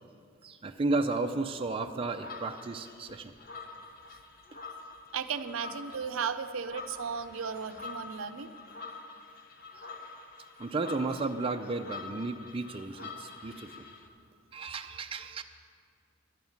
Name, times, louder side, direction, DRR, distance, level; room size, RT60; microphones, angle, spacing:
voice 1, 0.4-3.3 10.6-13.7 14.5-15.4, right 3 dB, 25° right, 5 dB, 0.4 m, -33 dB
sound 1, 2.1-14.1, left 4 dB, 45° left, 1.0 m, -46 dB
voice 2, 5.1-8.5, right 6 dB, 70° right, 10 dB, 0.6 m, -35 dB
11.5 x 7.2 x 9.4 m, 2.3 s
head